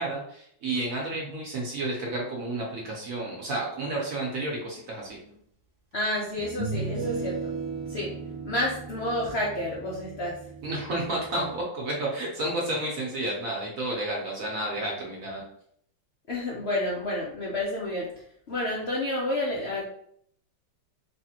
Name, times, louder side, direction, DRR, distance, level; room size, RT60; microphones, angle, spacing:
voice 1, 0.0-5.2 10.6-15.4, right 2 dB, 55° right, -3 dB, 1.0 m, -31 dB
sound 1, 5.3-5.4 6.4-11.6, right 4 dB, 40° right, 0.9 m, -36 dB
voice 2, 5.9-7.5 7.9-8.1 8.4-10.4 16.3-18.1 18.5-19.8, left 1 dB, 75° left, -3 dB, 0.6 m, -30 dB
3.5 x 3.2 x 2.8 m, 0.67 s
omnidirectional pair, 2.1 m